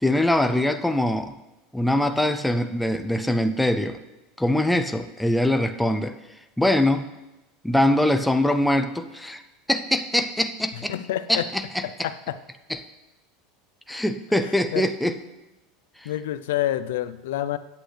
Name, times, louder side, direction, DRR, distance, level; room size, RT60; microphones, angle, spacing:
voice 1, 0.0-1.3 1.7-4.0 4.4-6.1 6.6-7.1 7.6-9.4 9.7-10.9 11.3-12.1 12.7-12.8 13.9-15.2, left 1 dB, ahead, 7 dB, 0.4 m, -23 dB
voice 2, 10.9-11.5 11.8-12.4 14.7-14.9 16.0-17.6, left 13 dB, 80° left, 14 dB, 0.5 m, -28 dB
15.5 x 8.6 x 3.3 m, 1.0 s
supercardioid pair, 175°, 0 cm